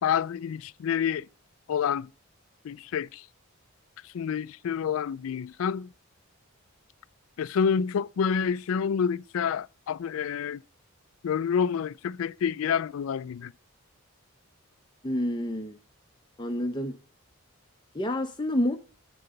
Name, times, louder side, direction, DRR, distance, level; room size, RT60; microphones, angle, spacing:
voice 1, 0.0-1.3 1.7-2.1 2.6-3.2 4.0-5.9 7.4-10.6 11.2-13.5, left 7 dB, 65° left, 0.3 m, -28 dB
voice 2, 15.0-15.8 16.4-17.0 17.9-18.8, left 1 dB, 20° left, 0.6 m, -28 dB
7.7 x 5.8 x 5.3 m
head